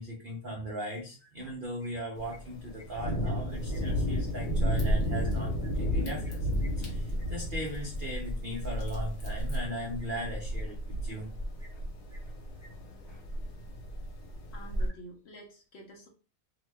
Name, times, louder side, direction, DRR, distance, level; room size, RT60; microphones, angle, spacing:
voice 1, 0.0-6.5 6.8-11.3, equal, 60° right, -1 dB, 0.5 m, -38 dB
sound 1, 0.9-1.5 1.8-3.8 5.2-8.6 9.9-10.2 10.5-11.3 11.6-12.3 12.6-12.7 13.0-13.2, left 1 dB, 5° left, 0.9 m, -58 dB
Thunder, 2.2-14.9, equal, 85° left, 1.2 m, -32 dB
sound 2, 3.5-9.6, left 2 dB, 45° left, 1.0 m, -56 dB
voice 2, 14.5-16.1, equal, 65° left, 1 dB, 0.6 m, -48 dB
2.8 x 2.1 x 3.2 m, 0.35 s
omnidirectional pair, 1.6 m